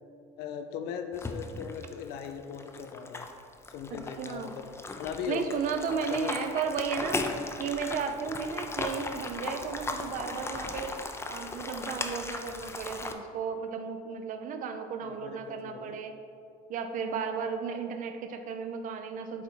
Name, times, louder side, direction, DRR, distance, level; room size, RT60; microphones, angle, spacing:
voice 1, 0.4-3.3 3.7-4.7 4.9-5.6 6.1-6.6 15.0-16.0, left 7 dB, 75° left, 6 dB, 0.5 m, -39 dB
sound 1, 1.1-13.1, left 3 dB, 15° left, 0.5 m, -37 dB
voice 2, 4.2-4.5 5.3-7.2 7.6-10.9 11.3-16.1 16.7-19.4, right 6 dB, 50° right, 7 dB, 0.6 m, -34 dB
8.1 x 2.7 x 4.4 m, 2.4 s
supercardioid pair, 100°, 17 cm